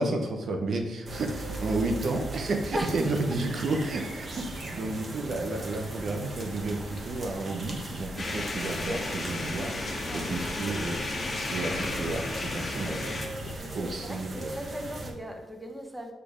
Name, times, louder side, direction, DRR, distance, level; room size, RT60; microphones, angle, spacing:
voice 1, 0.0-13.0 13.7-14.5, right 2 dB, 60° right, 3 dB, 0.8 m, -32 dB
sound 1, 1.1-15.1, right 2 dB, 45° right, 1.3 m, -39 dB
voice 2, 2.7-3.6 4.7-4.8 10.0-10.3 13.6-16.1, equal, 10° right, 3 dB, 1.1 m, -38 dB
sound 2, 6.6-13.6, left 3 dB, 75° left, 0.9 m, -46 dB
sound 3, 8.2-13.3, left 2 dB, 35° left, 1.4 m, -33 dB
6.9 x 3.4 x 5.0 m, 1.1 s
cardioid pair, 85°, 0 cm